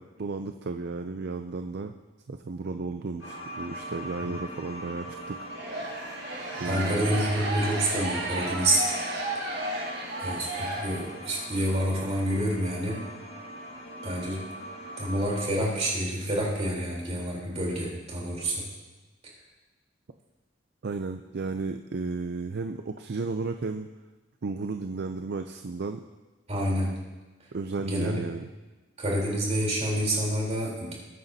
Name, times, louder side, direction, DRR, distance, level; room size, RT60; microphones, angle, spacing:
voice 1, 0.0-1.9 2.3-5.4 6.6-7.1 20.8-23.9 24.4-26.0 27.5-28.5, right 3 dB, 55° right, 6 dB, 0.5 m, -33 dB
sound 1, 3.2-15.5, right 1 dB, 75° left, 1.9 m, -42 dB
sound 2, 5.5-11.4, right 1 dB, 80° right, 4.3 m, -33 dB
voice 2, 6.6-8.8 10.2-13.0 14.0-14.4 15.0-18.6 26.5-26.9 27.8-28.2 29.0-30.9, right 1 dB, 35° right, -3 dB, 3.7 m, -28 dB
20.5 x 9.2 x 2.8 m, 1.2 s
head